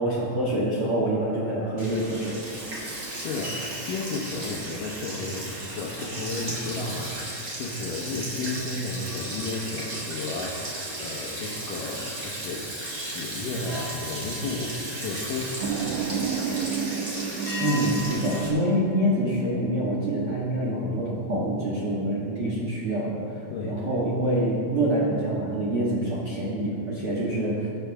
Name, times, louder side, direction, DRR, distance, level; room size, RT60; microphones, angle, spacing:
voice 1, 0.0-2.4 17.6-23.3 23.7-27.7, right 1 dB, 55° right, -6 dB, 1.5 m, -26 dB
Sink (filling or washing), 1.8-18.5, right 1 dB, 25° right, 2.2 m, -35 dB
voice 2, 3.0-16.5 23.5-24.0, left 3 dB, 75° left, -3 dB, 2.0 m, -33 dB
sound 1, 13.6-15.8 17.5-20.0, left 3 dB, 50° left, 3.0 m, -44 dB
sound 2, 15.6-20.6, right 6 dB, 85° right, 3.0 m, -32 dB
23.0 x 8.1 x 3.5 m, 2.3 s
omnidirectional pair, 5.3 m